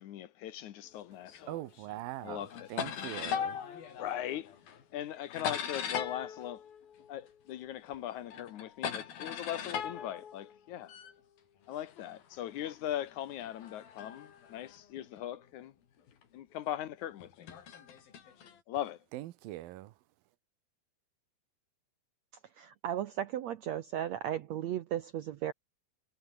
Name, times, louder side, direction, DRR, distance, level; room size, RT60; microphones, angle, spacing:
voice 1, 0.0-1.6 2.2-2.7 4.0-4.6 4.9-6.6 7.1-11.0 11.7-15.7 16.3-17.5 18.7-19.0, left 12 dB, 65° left, 2.3 m, -40 dB
sound 1, 1.3-2.0 2.3-7.6 7.9-11.1 11.8-15.4 16.1-16.2 17.2-18.6, left 8 dB, 85° left, 4.8 m, -40 dB
voice 2, 1.5-2.4 2.7-3.6 19.1-19.9, right 16 dB, 90° right, 2.7 m, -41 dB
voice 3, 22.6-25.5, right 11 dB, 70° right, 1.7 m, -35 dB
omnidirectional pair, 4.1 m